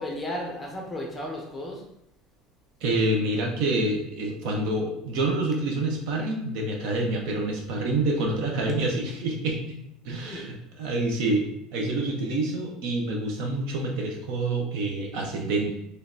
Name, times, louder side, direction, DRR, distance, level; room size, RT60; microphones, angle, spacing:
voice 1, 0.0-1.8 10.1-10.5, left 1 dB, 10° left, -1 dB, 0.7 m, -34 dB
voice 2, 2.8-9.6 10.0-15.8, right 2 dB, 55° right, 1 dB, 0.8 m, -27 dB
5.0 x 3.2 x 2.7 m, 0.78 s
cardioid pair, 175°, 0 cm